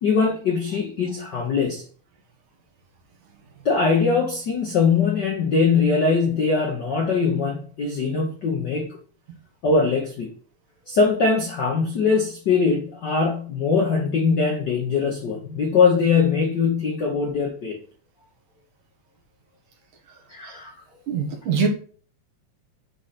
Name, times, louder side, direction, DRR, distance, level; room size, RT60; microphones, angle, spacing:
voice 1, 0.0-1.8 3.6-9.0 9.6-10.3 10.9-17.8 20.3-20.7, left 5 dB, 80° left, 0 dB, 0.9 m, -21 dB
voice 2, 21.1-21.7, right 6 dB, 75° right, 1 dB, 2.9 m, -22 dB
9.8 x 3.3 x 4.1 m, 0.44 s
omnidirectional pair, 3.6 m